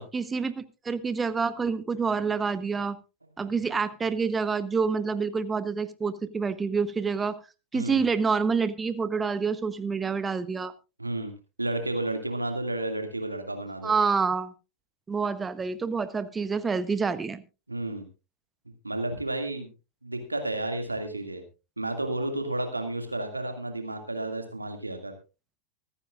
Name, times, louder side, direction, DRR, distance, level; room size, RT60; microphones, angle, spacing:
voice 1, 0.1-3.0 3.4-7.4 7.7-10.7 13.8-14.5 15.1-17.4, right 5 dB, 15° right, 15 dB, 1.0 m, -27 dB
voice 2, 11.0-11.3 11.6-13.9 17.7-18.0 18.8-19.7 20.0-21.4 21.8-25.1, right 1 dB, 85° right, 6 dB, 2.2 m, -31 dB
24.0 x 9.9 x 2.5 m, 0.30 s
figure-of-eight pair, 90°, 0 cm